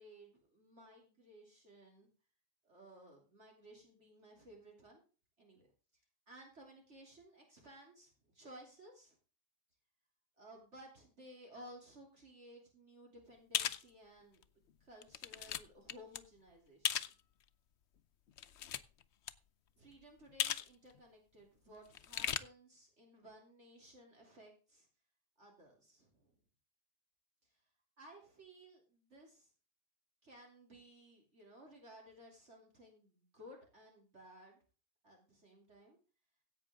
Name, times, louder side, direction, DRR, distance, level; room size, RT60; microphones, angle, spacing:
voice 1, 0.0-2.1 2.6-5.0 5.4-5.7 5.9-6.0 6.3-9.2 10.4-14.4 14.8-17.1 19.8-24.9 25.4-26.3 27.4-27.6 28.0-29.5 30.2-34.6 35.0-36.0, equal, 60° right, 0 dB, 3.4 m, -58 dB
sound 1, 13.5-13.8 14.4-14.5 15.0-15.6 15.9-16.2 16.8-17.1 18.3-19.0 19.3-19.4 20.4-20.7 20.9-21.0 21.9-22.4, left 10 dB, 65° left, 0.9 m, -36 dB
16.0 x 8.5 x 3.7 m, 0.36 s
omnidirectional pair, 1.3 m